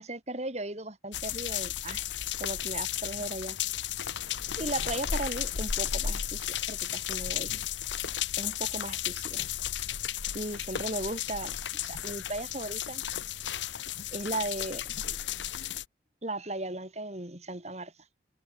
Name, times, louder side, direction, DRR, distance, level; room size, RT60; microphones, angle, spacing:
voice 1, 0.0-2.1 2.4-3.6 4.6-7.5 8.4-9.5 10.3-11.6 11.8-13.0 14.1-14.9 16.2-17.9, right 2 dB, 35° right, 4.2 m, -36 dB
sound 1, 1.1-15.9, left 10 dB, 75° left, 0.9 m, -34 dB
head